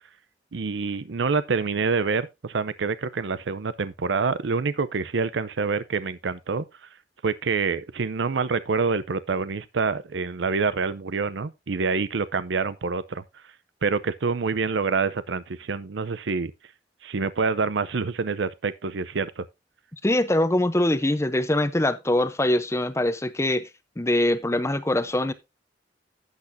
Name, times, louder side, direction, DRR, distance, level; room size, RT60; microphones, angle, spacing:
voice 1, 0.5-6.7 7.2-13.2 13.8-16.5 17.0-19.4, right 4 dB, 90° right, 0.6 m, -26 dB
voice 2, 20.0-23.7 24.0-25.3, left 1 dB, 15° left, 0.7 m, -23 dB
12.0 x 8.2 x 2.6 m
head